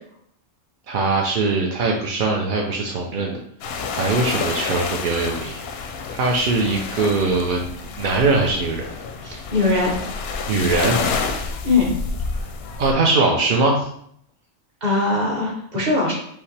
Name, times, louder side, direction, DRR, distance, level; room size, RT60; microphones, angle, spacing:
voice 1, 0.9-3.4 3.9-5.6 6.1-7.7 8.0-8.9 10.5-11.0 12.8-13.9, right 3 dB, 55° right, -1 dB, 0.6 m, -21 dB
sound 1, 3.6-12.9, left 4 dB, 65° left, 0.7 m, -29 dB
voice 2, 9.2-9.9 11.6-11.9 14.8-16.1, left 3 dB, 35° right, -1 dB, 1.2 m, -20 dB
5.5 x 2.8 x 3.2 m, 0.68 s
omnidirectional pair, 1.3 m